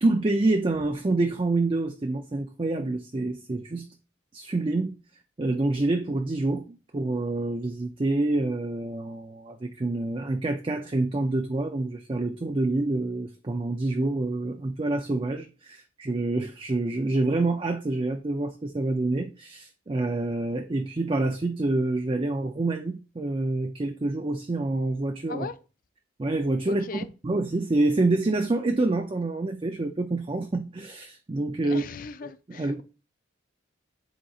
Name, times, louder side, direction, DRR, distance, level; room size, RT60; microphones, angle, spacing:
voice 1, 0.0-3.9 4.3-4.9 5.4-25.5 26.2-31.8 32.2-32.8, right 2 dB, 25° right, 0.4 m, -27 dB
voice 2, 26.7-27.1 31.6-32.8, left 4 dB, 45° left, 0.5 m, -38 dB
10.0 x 4.1 x 2.4 m
head